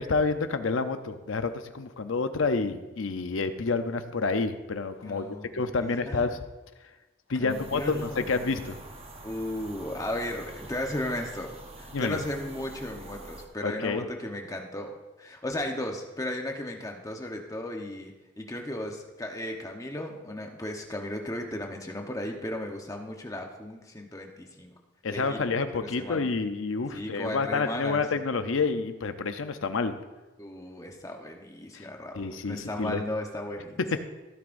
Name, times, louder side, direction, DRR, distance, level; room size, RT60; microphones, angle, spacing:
voice 1, 0.0-5.3 5.5-6.4 7.3-8.8 11.9-12.2 13.6-14.1 25.0-29.9 31.7-31.8 32.2-33.0 33.9-34.0, left 4 dB, 85° left, 9 dB, 0.7 m, -29 dB
voice 2, 5.0-6.3 7.3-8.4 9.2-24.7 25.1-26.2 26.9-28.0 30.4-33.8, left 1 dB, 15° left, 2 dB, 1.0 m, -35 dB
sound 1, 7.5-13.5, right 2 dB, 30° right, 1.0 m, -45 dB
16.0 x 9.4 x 2.6 m, 1.1 s
head